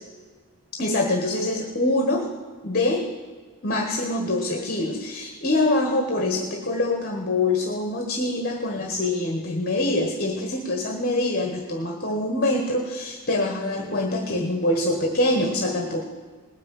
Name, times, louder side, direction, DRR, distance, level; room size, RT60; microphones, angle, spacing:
voice 1, 0.8-2.3 2.6-3.0 3.6-16.0, left 2 dB, 40° left, 3 dB, 1.3 m, -24 dB
19.0 x 6.6 x 9.0 m, 1.5 s
head